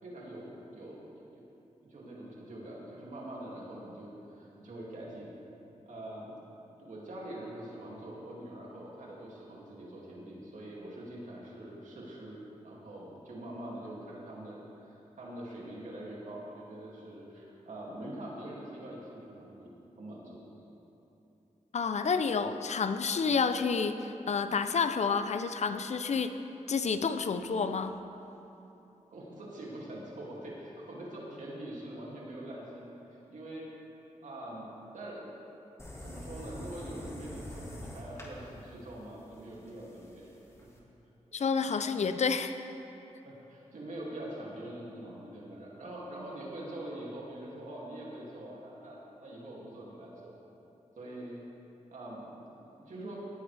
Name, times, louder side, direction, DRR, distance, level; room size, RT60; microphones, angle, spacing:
voice 1, 0.0-1.4 1.8-5.3 5.9-6.4 6.8-20.5 29.1-33.7 34.2-35.3 36.0-40.3 43.2-50.4 51.0-51.4 51.9-53.2, right 1 dB, 75° right, -4 dB, 2.5 m, -44 dB
voice 2, 21.7-26.3 26.7-28.0 41.3-42.5, left 5 dB, 60° left, 9 dB, 0.6 m, -29 dB
sound 1, 35.8-40.8, left 1 dB, 20° left, 2.0 m, -45 dB
17.5 x 8.6 x 3.4 m, 3.0 s
cardioid pair, 65°, 13 cm